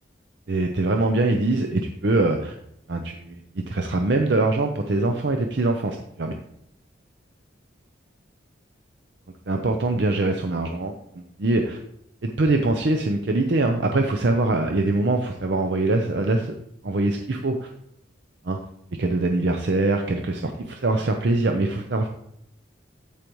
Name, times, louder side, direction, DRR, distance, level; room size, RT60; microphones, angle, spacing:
voice 1, 0.5-2.5 2.9-6.4 9.5-11.8 12.2-16.5 16.8-17.7 18.4-18.6 19.0-22.1, right 2 dB, 65° right, 4 dB, 0.6 m, -23 dB
13.0 x 5.0 x 3.1 m, 0.74 s
head